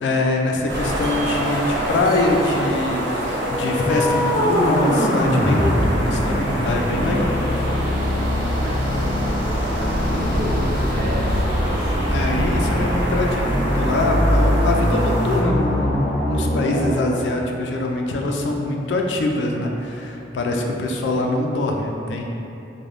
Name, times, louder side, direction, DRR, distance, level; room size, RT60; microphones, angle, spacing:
voice 1, 0.0-7.3 12.1-22.2, left 2 dB, 75° left, 2 dB, 0.3 m, -23 dB
sound 1, 0.7-15.4, right 1 dB, 85° right, 0.6 m, -26 dB
sound 2, 3.2-17.1, left 1 dB, 35° left, 0.8 m, -23 dB
voice 2, 7.6-11.9 12.6-13.0, equal, 45° right, -12 dB, 0.9 m, -33 dB
2.5 x 2.1 x 3.3 m, 2.9 s
head